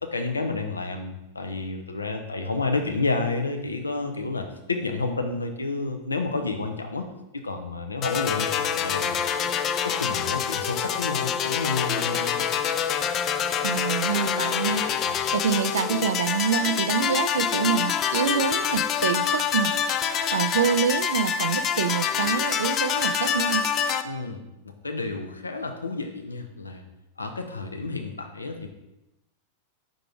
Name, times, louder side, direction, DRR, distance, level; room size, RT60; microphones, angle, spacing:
voice 1, 0.0-7.1 7.4-9.5 9.8-12.6 15.1-15.2 24.0-26.8 27.2-28.7, left 3 dB, 80° left, 5 dB, 0.7 m, -30 dB
sound 1, 8.0-24.0, left 8 dB, 30° left, 0.4 m, -26 dB
voice 2, 13.6-19.7 20.3-23.6, right 7 dB, 65° right, 12 dB, 0.3 m, -26 dB
5.6 x 3.8 x 4.8 m, 0.92 s
figure-of-eight pair, 90°, 0 cm